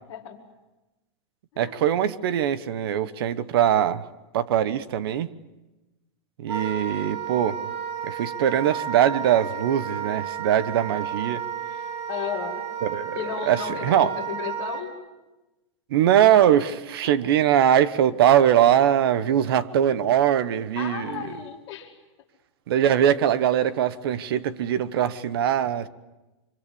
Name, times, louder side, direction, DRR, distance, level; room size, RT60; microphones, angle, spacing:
voice 1, 1.6-4.1 4.3-5.3 6.4-7.6 8.0-11.4 12.8-13.2 13.5-14.1 15.9-21.2 22.7-25.9, right 10 dB, 50° right, 1.1 m, -21 dB
Wind instrument woodwind instrument, 6.5-14.8, right 8 dB, 70° right, 4.1 m, -32 dB
voice 2, 12.1-12.6 13.1-15.0 17.0-17.3 20.7-21.9, left 9 dB, 25° left, 2.4 m, -34 dB
25.5 x 24.5 x 8.5 m
supercardioid pair, 175°, 15 cm